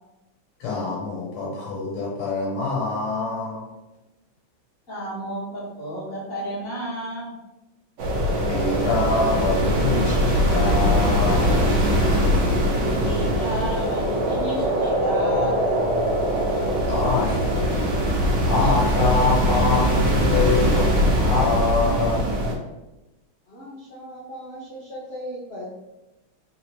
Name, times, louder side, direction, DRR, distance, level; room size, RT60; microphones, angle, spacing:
voice 1, 0.6-3.7 8.5-12.0 16.9-17.8 18.4-22.4, left 3 dB, 80° left, -2 dB, 1.8 m, -25 dB
voice 2, 4.9-7.3 13.0-15.8, equal, 40° left, -7 dB, 1.9 m, -32 dB
sound 1, 8.0-22.5, equal, 60° right, 1.6 m, -21 dB
voice 3, 23.5-25.8, equal, 60° left, -6 dB, 0.6 m, -37 dB
4.7 x 3.5 x 3.0 m, 1.0 s
omnidirectional pair, 2.4 m